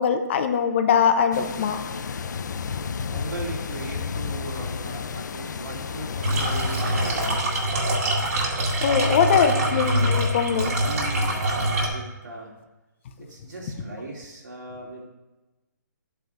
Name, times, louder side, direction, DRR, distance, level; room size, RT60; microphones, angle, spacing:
voice 1, 0.0-1.8 8.8-10.7, left 7 dB, 40° left, 7 dB, 0.7 m, -22 dB
sound 1, 1.3-7.4, left 6 dB, 70° left, 0.5 m, -32 dB
voice 2, 3.1-7.8 8.8-9.8 10.4-12.5 13.2-15.1, right 2 dB, 80° right, -3 dB, 3.1 m, -38 dB
sound 2, 6.2-11.9, right 1 dB, 55° right, 2.2 m, -24 dB
12.0 x 8.3 x 2.6 m, 1.1 s
hypercardioid pair, 150°, 10 cm